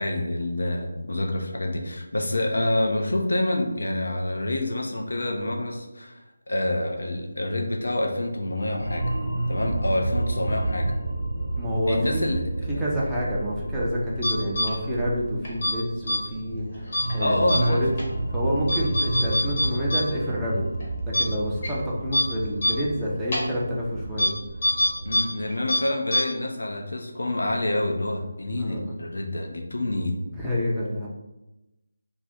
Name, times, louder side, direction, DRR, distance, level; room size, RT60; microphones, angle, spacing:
voice 1, 0.0-6.2 6.5-9.1 9.5-10.9 11.9-12.4 12.7-12.9 17.2-17.8 25.0-30.2, left 1 dB, 70° left, 2 dB, 0.6 m, -27 dB
sound 1, 8.8-25.2, right 2 dB, 60° right, 0.8 m, -30 dB
voice 2, 11.6-12.3 12.8-17.9 18.3-20.6 21.2-24.3 28.5-28.9 30.3-31.1, equal, 5° right, -8 dB, 0.6 m, -28 dB
sound 2, 14.2-14.7 15.4-15.7 16.1-16.2 16.9-17.1 17.5-17.6 18.0-18.1 18.7-20.0 20.3-20.4 20.8-20.9 21.1-21.2 21.6-21.7 22.1-22.2 22.6-22.7 23.3-23.4 24.2-24.3 24.6-25.2 25.5-25.8 26.1-26.2, left 1 dB, 45° left, 1.1 m, -23 dB
2.6 x 2.5 x 3.5 m, 0.98 s
figure-of-eight pair, 160°, 0 cm